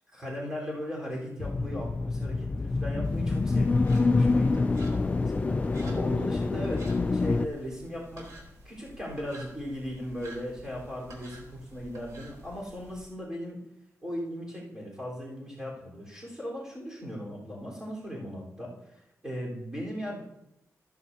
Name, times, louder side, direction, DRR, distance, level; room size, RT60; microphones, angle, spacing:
voice 1, 0.1-8.3 8.6-13.6 14.0-20.2, equal, 10° right, -4 dB, 4.3 m, -38 dB
sound 1, 1.4-7.5, left 3 dB, 25° left, 0.3 m, -26 dB
sound 2, 3.0-13.0, right 1 dB, 90° right, 3.6 m, -50 dB
14.5 x 14.0 x 2.8 m, 0.82 s
wide cardioid pair, 165°, 6 cm